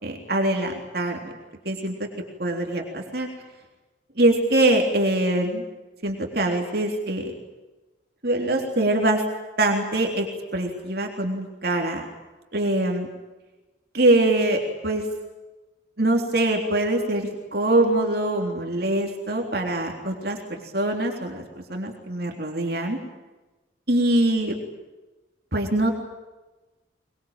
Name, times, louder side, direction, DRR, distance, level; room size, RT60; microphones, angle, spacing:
voice 1, 0.0-1.3 1.7-2.1 2.4-3.3 4.2-5.6 6.0-7.3 8.2-9.2 9.6-10.3 10.5-12.0 12.5-13.1 13.9-15.1 16.0-20.4 20.7-21.4 21.7-23.0 23.9-24.6 25.5-25.9, right 1 dB, 55° right, 2 dB, 3.6 m, -23 dB
23.5 x 22.5 x 9.1 m, 1.1 s
head